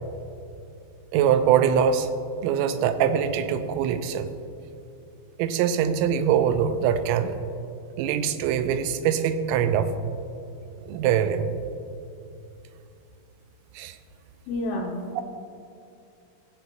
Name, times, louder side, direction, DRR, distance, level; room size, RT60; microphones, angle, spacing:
voice 1, 1.1-2.1 2.4-4.3 5.4-7.4 8.0-9.9 10.8-11.5 13.7-14.0 15.2-15.3, right 8 dB, 90° right, 10 dB, 2.9 m, -23 dB
voice 2, 14.5-15.2, left 1 dB, 75° left, 1 dB, 3.1 m, -30 dB
16.5 x 7.9 x 3.0 m, 2.6 s
omnidirectional pair, 5.1 m